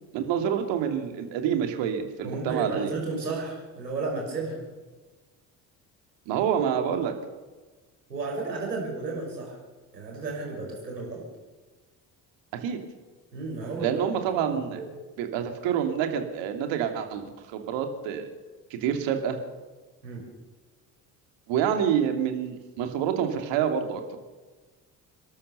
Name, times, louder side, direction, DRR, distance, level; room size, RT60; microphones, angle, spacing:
voice 1, 0.1-2.9 6.3-7.1 12.5-12.8 13.8-14.8 15.2-18.3 18.7-19.4 21.5-24.0, right 8 dB, 65° right, 6 dB, 2.9 m, -27 dB
voice 2, 2.2-4.6 8.1-9.6 9.9-11.2 13.3-14.0 14.4-14.9 20.0-20.2, right 3 dB, 85° right, 0 dB, 5.7 m, -33 dB
28.5 x 13.0 x 6.9 m, 1.3 s
figure-of-eight pair, 50°, 48 cm